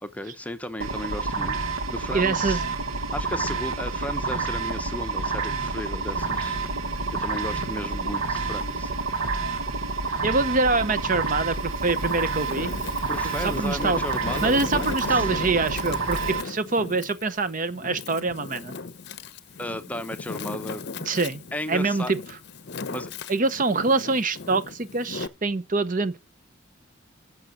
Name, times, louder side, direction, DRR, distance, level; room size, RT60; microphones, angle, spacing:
voice 1, 0.0-1.6 1.9-2.6 3.1-6.6 7.1-8.9 12.2-12.3 13.1-15.3 19.6-20.9 21.5-22.1 22.9-23.1, left 1 dB, 5° left, 0.8 m, -34 dB
sound 1, 0.8-16.4, right 4 dB, 85° right, 1.4 m, -29 dB
voice 2, 2.1-2.6 10.2-11.6 11.8-12.7 13.2-14.0 14.4-18.7 21.1-21.4 21.7-22.2 23.3-26.2, right 3 dB, 40° right, 0.7 m, -25 dB
Wind, 6.1-8.9 9.4-10.7 11.3-25.3, left 4 dB, 55° left, 0.7 m, -38 dB
11.0 x 7.1 x 6.5 m
head